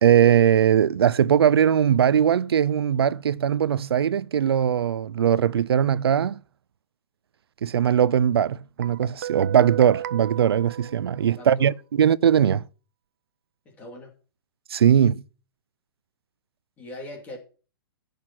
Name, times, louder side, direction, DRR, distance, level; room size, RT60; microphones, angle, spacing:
voice 1, 0.0-6.4 7.6-12.6 14.7-15.2, right 9 dB, 90° right, 0.6 m, -20 dB
Guitar, 8.8-11.6, right 12 dB, 40° right, 0.7 m, -34 dB
voice 2, 11.4-11.7 13.6-14.1 16.8-17.4, left 1 dB, 10° left, 2.7 m, -40 dB
16.0 x 6.7 x 6.1 m
hypercardioid pair, 175°, 13 cm